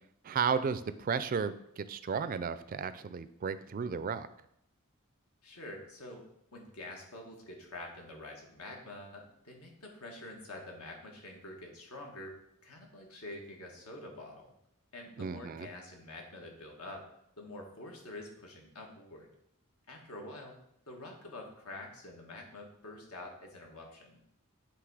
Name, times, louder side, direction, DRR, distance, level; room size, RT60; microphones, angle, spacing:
voice 1, 0.2-4.3 15.2-15.7, right 6 dB, 40° right, 13 dB, 0.3 m, -34 dB
voice 2, 5.4-6.3 6.5-12.3 12.6-14.5 14.9-17.0 17.4-19.3 19.9-20.5 20.9-24.2, left 2 dB, 85° left, 1 dB, 1.5 m, -47 dB
7.8 x 3.4 x 4.8 m, 0.75 s
head